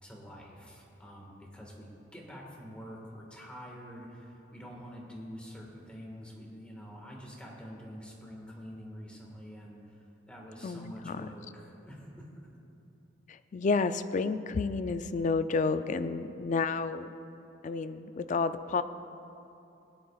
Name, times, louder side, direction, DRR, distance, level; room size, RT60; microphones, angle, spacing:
voice 1, 0.0-10.0 10.3-12.3, equal, 5° left, -3 dB, 1.6 m, -46 dB
voice 2, 10.6-11.3 13.3-17.1 17.6-18.8, left 4 dB, 40° left, 11 dB, 0.3 m, -30 dB
17.5 x 10.0 x 2.4 m, 2.8 s
head